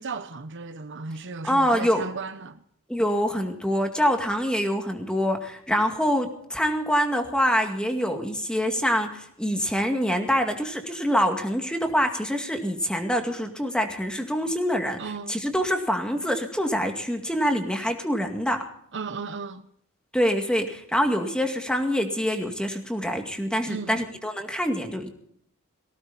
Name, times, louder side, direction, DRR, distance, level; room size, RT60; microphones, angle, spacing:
voice 1, 0.0-2.6 15.0-15.4 18.9-19.7 23.7-24.0, right 4 dB, 60° right, 0.9 m, -35 dB
voice 2, 1.4-2.1 2.9-15.0 15.3-18.7 20.1-25.1, equal, 5° left, 2.1 m, -25 dB
19.0 x 17.0 x 4.1 m
head